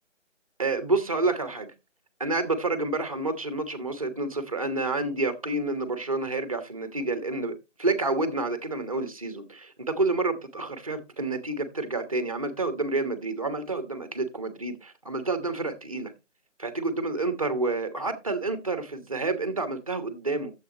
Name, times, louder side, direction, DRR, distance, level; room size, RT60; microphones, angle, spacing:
voice 1, 0.6-1.7 2.2-16.1 16.6-20.5, right 2 dB, 30° right, 1.3 m, -29 dB
13.0 x 7.7 x 2.9 m
figure-of-eight pair, 170°, 37 cm